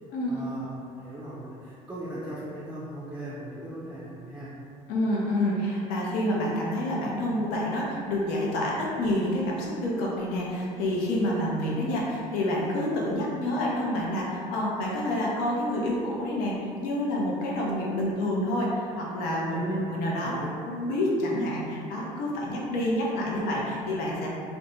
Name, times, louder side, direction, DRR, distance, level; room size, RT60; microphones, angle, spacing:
voice 1, 0.3-0.7 1.0-4.5 19.5-19.8 20.2-20.5, right 1 dB, 10° right, -9 dB, 0.5 m, -37 dB
voice 2, 4.9-19.6 19.9-24.3, left 1 dB, 80° left, -3 dB, 0.6 m, -28 dB
2.5 x 2.1 x 3.0 m, 2.4 s
cardioid pair, 120°, 15 cm